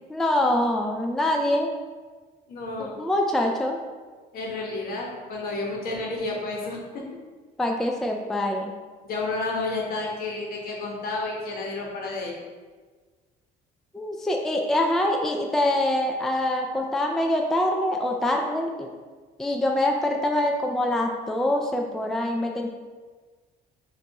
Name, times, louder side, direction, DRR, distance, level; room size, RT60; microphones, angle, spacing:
voice 1, 0.1-1.7 2.8-3.8 7.6-8.7 13.9-18.9 19.4-22.7, left 1 dB, ahead, 2 dB, 0.3 m, -24 dB
voice 2, 2.5-3.0 4.3-7.0 9.0-12.3, left 2 dB, 60° left, -1 dB, 1.1 m, -31 dB
6.5 x 2.6 x 2.8 m, 1.4 s
cardioid pair, 110°, 17 cm